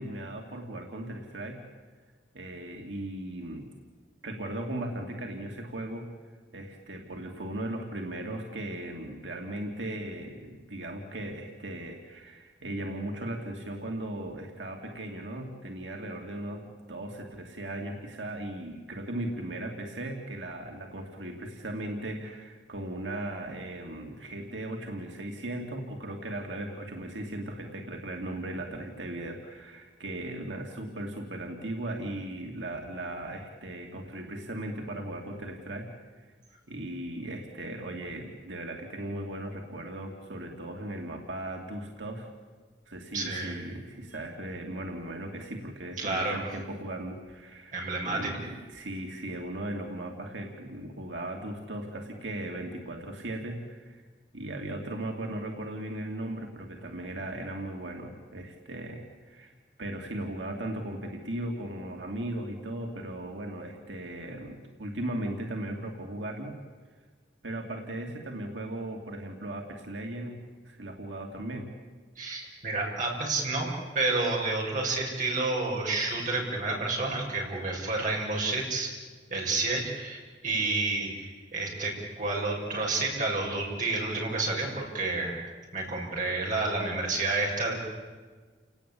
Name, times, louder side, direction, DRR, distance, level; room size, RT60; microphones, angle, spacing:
voice 1, 0.0-1.6 2.3-3.7 4.2-6.1 6.5-36.3 36.7-42.3 42.9-54.0 54.3-59.5 59.8-66.6 67.4-70.4 70.6-71.7, right 1 dB, 90° right, 2 dB, 2.7 m, -37 dB
voice 2, 43.1-43.5 46.0-46.4 47.7-48.3 72.2-73.7 73.9-78.9 79.3-85.3 85.7-87.7, right 3 dB, 45° right, -1 dB, 6.6 m, -30 dB
29.5 x 19.0 x 8.7 m, 1.4 s
head